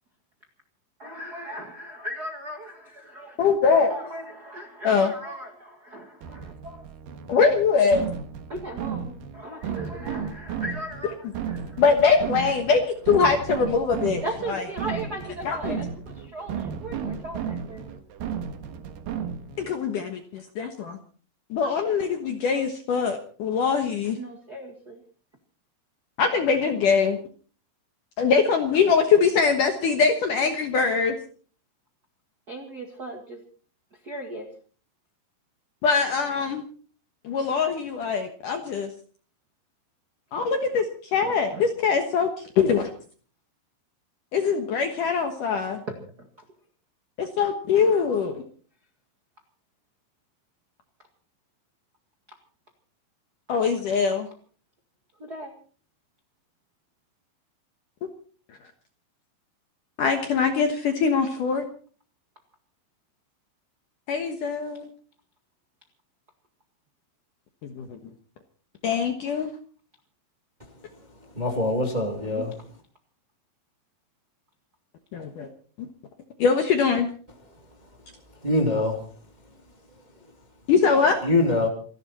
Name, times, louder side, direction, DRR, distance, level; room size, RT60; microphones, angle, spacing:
voice 1, 1.0-3.4 3.9-6.8 8.5-11.8 14.2-17.8 24.2-25.0 32.5-33.4 34.0-34.5 41.2-41.6 46.2-46.3 55.2-55.5, right 1 dB, 80° right, 0.8 m, -37 dB
voice 2, 3.4-3.9 4.8-5.1 7.3-8.1 11.8-14.6 15.5-15.8 19.6-21.0 21.5-24.2 26.2-27.2 28.2-31.2 35.8-36.6 37.2-38.9 40.3-40.9 41.1-42.9 44.3-45.8 47.2-48.4 53.5-54.3 60.0-61.6 64.1-64.9 67.6-68.0 68.8-69.5 72.4-72.5 75.1-75.5 76.4-77.1 80.7-81.2, left 5 dB, 65° left, 2.1 m, -22 dB
sound 1, 6.2-19.7, right 7 dB, 60° right, 2.6 m, -34 dB
voice 3, 71.3-72.5 78.4-79.0 81.2-81.7, left 2 dB, 20° right, 1.3 m, -23 dB
27.5 x 12.0 x 4.3 m
omnidirectional pair, 5.5 m